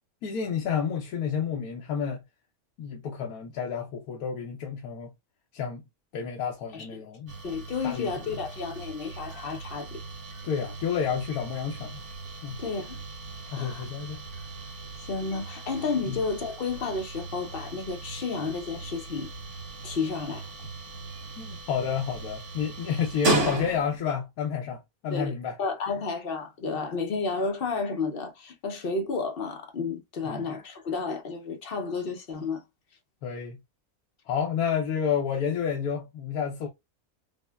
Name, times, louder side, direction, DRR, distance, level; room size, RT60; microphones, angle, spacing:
voice 1, 0.2-2.2 2.8-5.1 5.5-5.8 6.1-7.4 7.8-8.3 10.4-12.0 12.4-12.6 13.5-14.2 16.1-16.2 21.4-25.6 30.2-30.5 33.2-33.6 34.3-36.7, left 7 dB, 85° left, 1.1 m, -30 dB
sound 1, 7.3-24.1, right 2 dB, 85° right, 1.7 m, -36 dB
voice 2, 7.4-10.0 12.6-13.0 13.5-13.8 15.1-19.3 19.8-20.5 25.1-32.6, left 4 dB, 55° left, 0.6 m, -31 dB
5.2 x 2.1 x 2.2 m
omnidirectional pair, 1.5 m